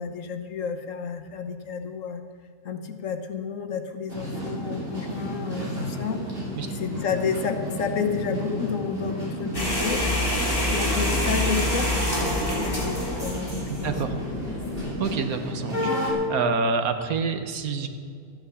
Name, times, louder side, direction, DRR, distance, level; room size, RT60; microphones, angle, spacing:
voice 1, 0.0-2.2 2.6-6.2 6.7-13.9, left 6 dB, 65° left, 6 dB, 1.3 m, -31 dB
sound 1, 4.1-16.1, equal, 40° right, 3.4 m, -32 dB
sound 2, 9.5-14.8, left 1 dB, 15° left, 3.2 m, -27 dB
voice 2, 13.8-14.1 15.0-17.9, right 4 dB, 80° right, 8 dB, 1.5 m, -27 dB
13.5 x 9.6 x 7.0 m, 2.3 s
omnidirectional pair, 1.5 m